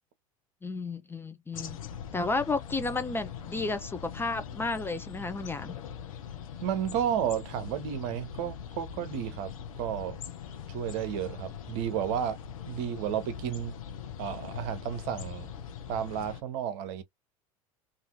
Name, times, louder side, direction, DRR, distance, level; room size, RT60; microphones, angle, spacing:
voice 1, 0.6-1.8 2.1-5.8, left 3 dB, 15° left, 0.4 m, -32 dB
sound 1, 1.5-16.4, left 8 dB, 70° left, 0.7 m, -42 dB
voice 2, 6.6-9.5 9.8-10.2 10.7-12.4 12.7-13.7 14.2-15.5 15.9-17.0, right 9 dB, 55° right, 0.7 m, -32 dB
2.6 x 2.5 x 2.8 m
figure-of-eight pair, 75°, 18 cm